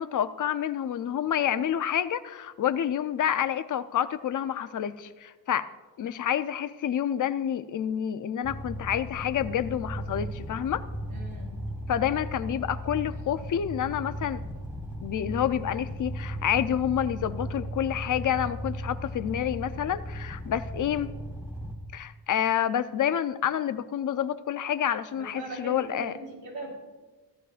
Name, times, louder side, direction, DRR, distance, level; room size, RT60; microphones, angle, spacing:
voice 1, 0.0-5.7 6.0-10.8 11.9-14.4 15.0-21.1 21.9-26.1, left 10 dB, 55° left, 12 dB, 0.5 m, -28 dB
sound 1, 8.4-21.7, equal, 5° right, 1.3 m, -36 dB
voice 2, 11.1-11.6 25.1-26.7, right 2 dB, 65° right, -1 dB, 3.6 m, -40 dB
15.0 x 12.5 x 2.5 m, 1.3 s
wide cardioid pair, 145°, 38 cm